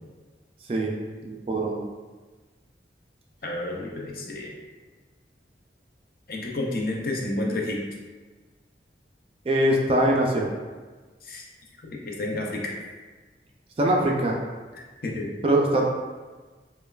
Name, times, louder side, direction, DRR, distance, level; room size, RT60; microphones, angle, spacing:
voice 1, 1.2-1.8 9.5-10.5 13.8-14.4 15.4-15.8, right 1 dB, 30° right, -1 dB, 0.3 m, -22 dB
voice 2, 3.4-4.5 6.3-7.8 11.2-11.5 11.8-12.8 14.7-15.3, left 2 dB, 55° left, -1 dB, 0.5 m, -30 dB
5.2 x 2.2 x 2.3 m, 1.3 s
head